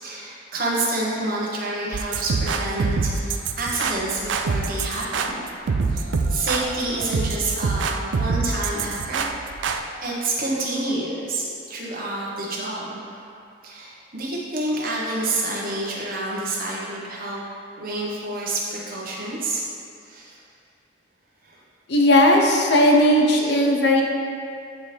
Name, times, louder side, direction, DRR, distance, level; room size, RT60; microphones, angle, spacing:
voice 1, 0.0-13.2 13.6-17.4 17.8-19.6 20.0-20.4 21.4-21.6 23.4-23.5, right 2 dB, 50° right, -5 dB, 1.2 m, -28 dB
sound 1, 1.9-9.8, right 4 dB, 70° right, 0.4 m, -25 dB
voice 2, 21.9-24.0, left 1 dB, 60° left, 0 dB, 0.7 m, -17 dB
9.0 x 4.2 x 3.4 m, 2.5 s
head